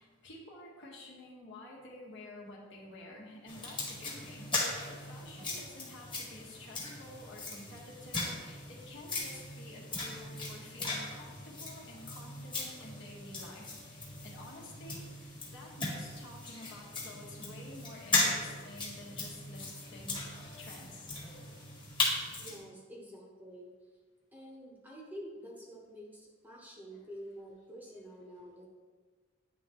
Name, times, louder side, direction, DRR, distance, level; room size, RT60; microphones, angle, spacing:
voice 1, 0.0-21.1 26.9-27.1 27.9-28.0, left 1 dB, 60° left, -3 dB, 1.4 m, -50 dB
sound 1, 3.5-22.6, left 2 dB, 25° left, 1.5 m, -38 dB
voice 2, 22.4-23.7 24.3-28.7, equal, 10° right, -3 dB, 0.9 m, -48 dB
9.8 x 3.5 x 2.9 m, 1.5 s
head